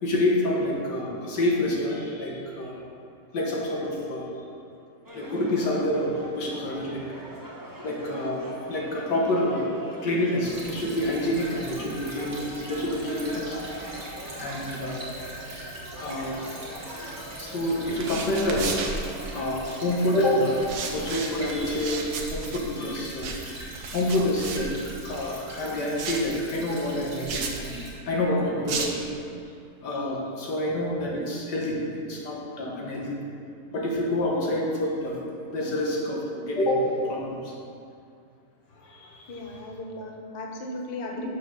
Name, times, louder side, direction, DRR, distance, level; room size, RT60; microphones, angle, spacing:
voice 1, 0.0-2.8 3.3-4.4 5.1-7.0 7.8-8.4 8.7-9.7 10.0-13.6 14.4-15.1 16.0-16.4 16.9-18.8 19.2-20.6 20.9-24.7 25.0-27.8 28.1-29.1 29.8-33.2 33.7-35.2 35.5-37.5 38.7-39.7 41.1-41.2, left 1 dB, 70° left, -3 dB, 1.9 m, -28 dB
sound 1, 5.0-22.0, right 1 dB, 20° right, 0.6 m, -43 dB
Stream / Trickle dribble, 10.4-27.9, right 1 dB, 45° right, 2.1 m, -42 dB
sound 2, 17.8-19.7 20.6-25.3 26.0-26.4 27.3-27.6 28.7-29.1, right 4 dB, 65° right, 1.2 m, -34 dB
voice 2, 39.3-41.3, left 2 dB, 45° left, 1 dB, 0.7 m, -36 dB
6.7 x 5.8 x 6.4 m, 2.4 s
omnidirectional pair, 1.9 m